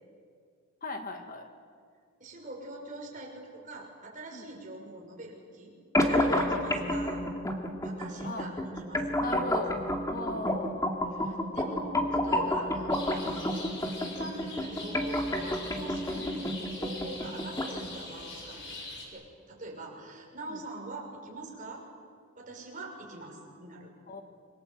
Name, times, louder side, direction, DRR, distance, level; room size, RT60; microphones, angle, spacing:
voice 1, 0.8-1.5 4.3-4.4 6.3-6.6 8.2-8.5 9.2-9.7 10.1-10.8 16.2-16.3 20.5-20.6 24.1-24.2, left 2 dB, 40° left, 5 dB, 1.9 m, -38 dB
voice 2, 2.2-5.7 6.1-7.2 7.8-9.5 10.3-10.6 11.1-18.7 19.1-21.8 22.4-23.9, right 1 dB, 40° right, 0 dB, 6.2 m, -43 dB
sound 1, 5.9-17.9, left 1 dB, 15° left, 2.4 m, -30 dB
sound 2, 12.9-19.1, left 2 dB, 60° left, 6.6 m, -43 dB
27.0 x 25.0 x 8.0 m, 2.2 s
head